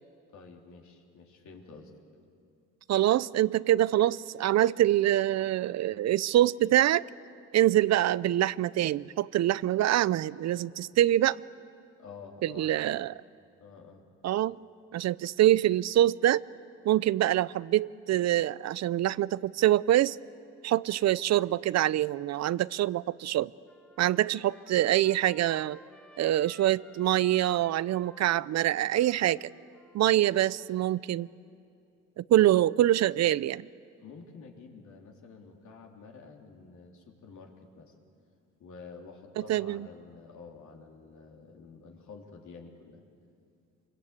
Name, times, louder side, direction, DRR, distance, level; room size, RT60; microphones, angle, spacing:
voice 1, 0.3-1.9 12.0-12.9 13.6-14.1 34.0-37.9 38.6-43.0, left 4 dB, 70° left, 0 dB, 3.6 m, -49 dB
voice 2, 2.9-7.0 7.5-11.4 12.4-13.1 14.2-14.6 14.9-16.4 16.9-20.2 20.6-23.5 24.0-25.8 26.2-29.5 29.9-31.3 32.2-33.7 39.5-39.9, right 13 dB, 60° right, 20 dB, 0.5 m, -25 dB
Trumpet, 23.7-30.3, left 2 dB, 5° left, 3.2 m, -56 dB
25.5 x 22.0 x 8.5 m, 2.5 s
cardioid pair, 90°, 30 cm